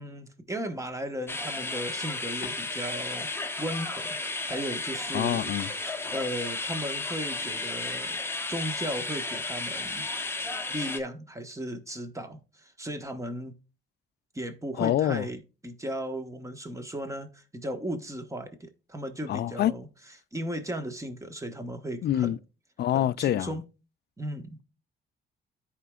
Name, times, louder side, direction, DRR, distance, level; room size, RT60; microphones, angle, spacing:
voice 1, 0.0-3.3 3.6-4.2 4.5-8.2 8.5-10.1 10.7-13.6 14.3-19.9 20.3-22.3 22.9-23.6 24.2-24.6, right 1 dB, 15° right, 1.3 m, -36 dB
sound 1, 1.3-11.0, left 3 dB, 10° left, 0.8 m, -33 dB
voice 2, 5.1-5.7 14.8-15.3 19.3-19.7 22.0-22.4 22.8-23.5, left 12 dB, 55° left, 0.4 m, -26 dB
13.5 x 5.0 x 2.4 m
cardioid pair, 90°, 20 cm